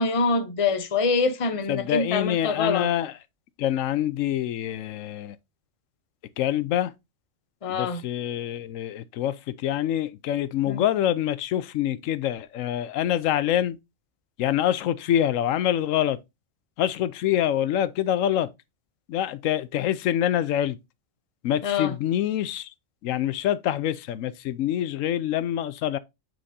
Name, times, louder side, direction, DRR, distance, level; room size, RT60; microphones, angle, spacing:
voice 1, 0.0-2.9 7.6-8.0 10.7-10.8 21.6-22.0, left 4 dB, 30° left, 0.7 m, -25 dB
voice 2, 1.7-3.1 3.6-5.4 6.4-6.9 7.7-13.8 14.4-16.2 16.8-18.5 19.1-20.8 21.4-22.7 23.0-26.0, left 11 dB, 90° left, 1.0 m, -25 dB
8.7 x 4.5 x 2.7 m
omnidirectional pair, 1.3 m